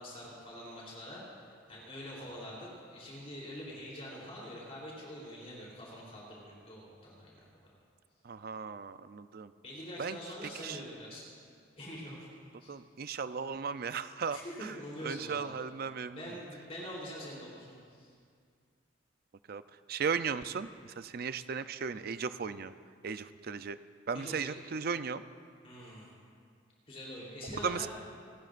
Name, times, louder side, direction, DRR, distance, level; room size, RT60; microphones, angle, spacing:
voice 1, 0.0-7.4 9.6-11.2 11.8-12.3 12.6-12.7 14.3-15.6 16.1-18.1 24.1-24.5 25.6-26.1 26.9-27.9, equal, 35° left, -5 dB, 3.4 m, -45 dB
voice 2, 8.2-9.5 10.0-10.2 10.6-10.8 12.7-14.4 15.0-16.2 19.5-19.6 19.9-22.7 23.0-23.8 24.1-25.2 27.6-27.9, right 6 dB, 50° right, 12 dB, 0.5 m, -36 dB
29.0 x 13.0 x 2.5 m, 2.1 s
head